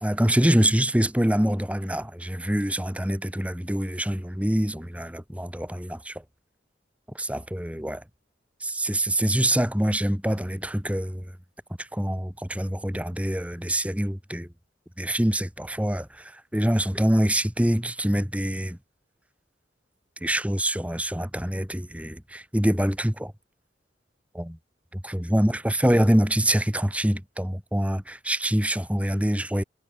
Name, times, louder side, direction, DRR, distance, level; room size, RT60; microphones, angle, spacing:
voice 1, 0.0-6.2 7.1-8.0 8.6-11.3 11.8-14.5 15.0-18.8 20.2-23.3 24.3-24.6 25.0-29.6, equal, 5° right, 2.5 m, -25 dB
head